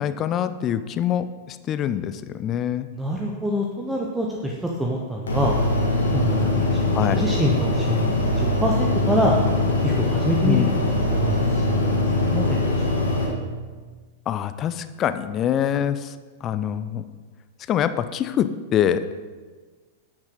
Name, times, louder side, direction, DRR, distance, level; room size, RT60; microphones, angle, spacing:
voice 1, 0.0-2.9 6.9-7.2 10.4-10.7 14.3-16.1 16.4-17.1 17.7-19.1, left 9 dB, 30° left, 12 dB, 0.5 m, -24 dB
voice 2, 2.9-5.6 6.1-6.8 7.1-9.3 9.8-12.8, equal, 5° right, -2 dB, 1.0 m, -26 dB
sound 1, 5.3-13.3, left 2 dB, 70° left, 2.1 m, -22 dB
10.0 x 8.8 x 3.9 m, 1.4 s
figure-of-eight pair, 95°, 0 cm